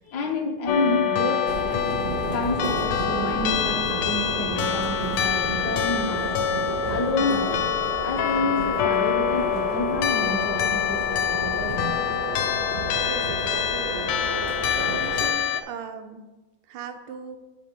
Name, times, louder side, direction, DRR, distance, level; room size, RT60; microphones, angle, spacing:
voice 1, 0.0-1.5 2.3-6.5 6.9-11.9, left 2 dB, 55° left, 2 dB, 1.4 m, -29 dB
sound 1, 0.7-15.6, left 9 dB, 90° left, 1.6 m, -26 dB
sound 2, 1.5-15.3, right 2 dB, 65° right, 0.5 m, -32 dB
voice 2, 13.1-16.3 16.7-17.4, right 6 dB, 80° right, 7 dB, 1.6 m, -38 dB
8.0 x 3.6 x 6.2 m, 1.1 s
omnidirectional pair, 2.4 m